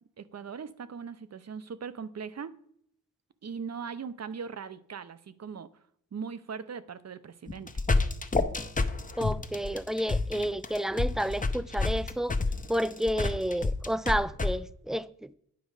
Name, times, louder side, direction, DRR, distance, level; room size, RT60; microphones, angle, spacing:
voice 1, 0.2-2.5 3.4-5.7 6.1-7.8, right 6 dB, 50° right, 0.7 m, -40 dB
sound 1, 7.5-14.5, left 3 dB, 25° left, 0.7 m, -28 dB
voice 2, 9.2-12.4 12.7-15.3, equal, ahead, 0.3 m, -30 dB
9.3 x 5.2 x 4.8 m
cardioid pair, 60°, 34 cm